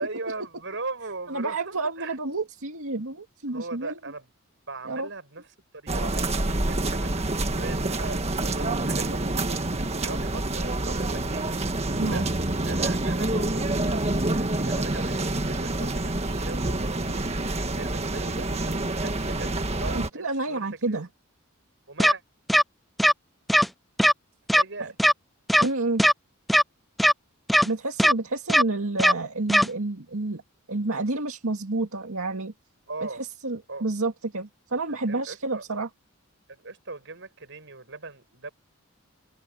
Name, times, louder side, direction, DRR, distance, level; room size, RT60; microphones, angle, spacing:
voice 1, 0.0-2.2 3.5-4.3 4.7-5.5 5.7-9.6 10.0-11.6 12.0-12.3 12.6-17.3 17.8-21.0 21.9-22.2 24.5-24.9 32.9-33.2 33.7-33.9 34.9-35.6 36.5-38.5, right 3 dB, 60° right, 7.6 m, -39 dB
voice 2, 1.3-4.0 4.9-5.1 12.0-12.3 19.9-21.1 24.8-24.9 25.6-26.0 27.6-30.4 30.7-32.5 33.1-35.9, right 2 dB, 80° right, 2.1 m, -29 dB
sound 1, 5.9-20.1, right 2 dB, 30° right, 1.6 m, -27 dB
sound 2, 22.0-22.1 22.5-22.6 23.0-23.1 23.5-23.7 24.0-24.1 24.5-24.6 25.0-25.1 25.5-25.7 26.0-26.1 26.5-26.6 27.0-27.1 27.5-27.7 28.0-28.1 28.5-28.6 29.0-29.1 29.5-29.7, equal, ahead, 0.4 m, -18 dB
head